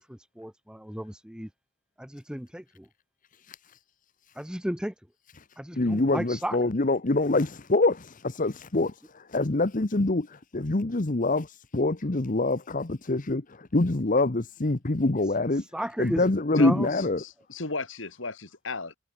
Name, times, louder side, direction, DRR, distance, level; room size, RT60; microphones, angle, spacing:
voice 1, 0.0-1.5 2.0-2.8 4.4-4.9 5.6-6.6 15.7-16.2 16.5-16.9, equal, 5° right, 1.1 m, -34 dB
voice 2, 3.4-3.8 5.4-5.5 5.8-15.6 16.0-17.2, left 2 dB, 40° left, 1.0 m, -25 dB
voice 3, 17.2-19.0, left 3 dB, 65° left, 2.8 m, -34 dB
head